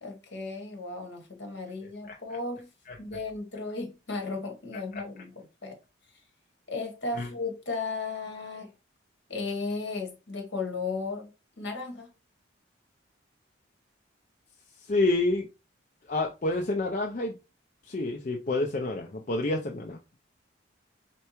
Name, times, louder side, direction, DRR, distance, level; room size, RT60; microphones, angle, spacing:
voice 1, 0.0-2.7 3.0-5.8 6.7-8.7 9.3-11.3 11.6-12.1, left 3 dB, 65° left, 1.2 m, -35 dB
voice 2, 14.9-15.5 16.1-17.4 17.8-20.0, left 2 dB, 40° left, 0.5 m, -28 dB
4.4 x 3.3 x 3.0 m
head